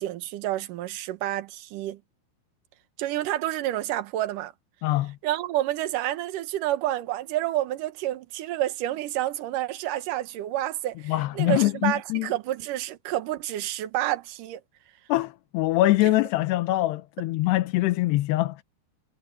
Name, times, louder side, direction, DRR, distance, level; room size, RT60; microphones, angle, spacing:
voice 1, 0.0-2.0 3.0-4.5 5.2-14.6, right 14 dB, 65° right, 2.5 m, -29 dB
voice 2, 4.8-5.2 11.1-12.3 15.1-18.6, left 17 dB, 90° left, 3.1 m, -24 dB
omnidirectional pair, 4.6 m